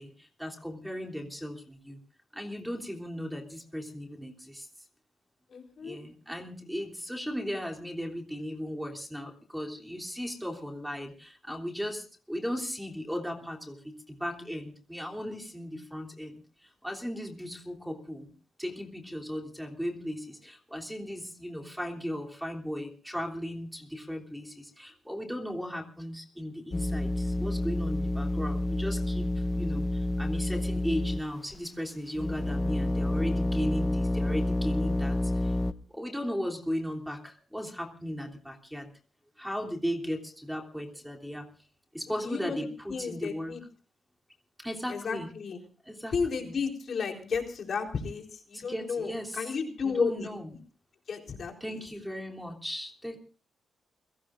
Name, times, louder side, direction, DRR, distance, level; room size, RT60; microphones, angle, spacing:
voice 1, 0.0-2.0 2.3-4.7 5.8-18.3 18.6-35.6 35.9-38.9 39.4-41.4 41.9-43.5 44.6-45.3 45.9-46.5 47.1-47.2 48.5-49.5 49.8-50.5 51.6-53.2, equal, ahead, 1 dB, 3.3 m, -36 dB
voice 2, 5.5-6.0 42.1-43.6 44.9-45.6 46.1-50.3 51.1-51.8, left 5 dB, 55° left, 2 dB, 3.9 m, -33 dB
sound 1, 26.7-31.5 32.2-35.7, left 1 dB, 15° left, 0.7 m, -29 dB
29.0 x 17.5 x 2.6 m, 0.40 s
cardioid pair, 100°, 0 cm